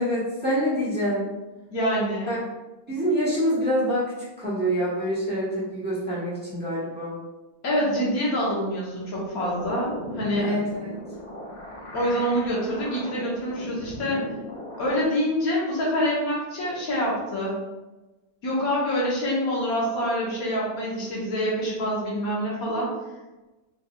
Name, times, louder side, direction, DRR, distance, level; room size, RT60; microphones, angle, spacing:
voice 1, 0.0-1.3 2.3-2.4 2.9-4.1 4.4-7.1 10.4-10.6, equal, 5° right, -10 dB, 1.2 m, -26 dB
voice 2, 1.7-2.3 7.6-10.5 11.9-14.3 14.8-17.6 18.4-22.9, equal, 75° left, -5 dB, 1.5 m, -26 dB
sound 1, 9.4-15.0, equal, 40° left, 0.5 m, -38 dB
3.9 x 2.8 x 2.3 m, 1.1 s
omnidirectional pair, 1.5 m